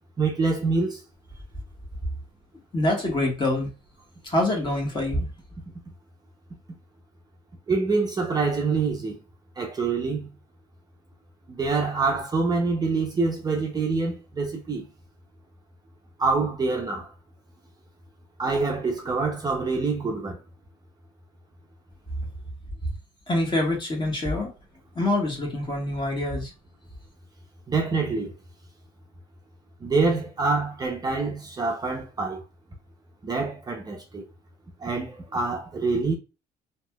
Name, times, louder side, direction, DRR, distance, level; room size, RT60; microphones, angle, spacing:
voice 1, 0.2-1.0 7.7-9.2 9.6-10.3 11.5-14.8 16.2-17.1 18.4-20.4 27.7-28.3 29.8-32.4 33.2-34.2 34.8-36.1, right 4 dB, 25° right, 0.6 m, -26 dB
voice 2, 2.7-3.7 4.2-5.3 23.3-24.5 24.9-26.5, left 1 dB, 25° left, 1.4 m, -25 dB
3.1 x 2.9 x 2.3 m
cardioid pair, 110°, 17 cm